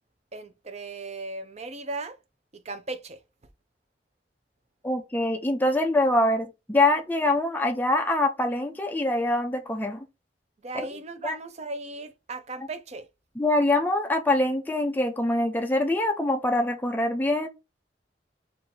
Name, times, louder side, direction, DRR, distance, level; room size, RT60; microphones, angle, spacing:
voice 1, 0.3-2.2 2.5-3.2 10.6-13.1, right 2 dB, 40° right, 0.6 m, -37 dB
voice 2, 4.8-10.0 11.2-11.4 13.4-17.5, left 1 dB, 10° left, 0.5 m, -24 dB
4.6 x 2.6 x 3.7 m
head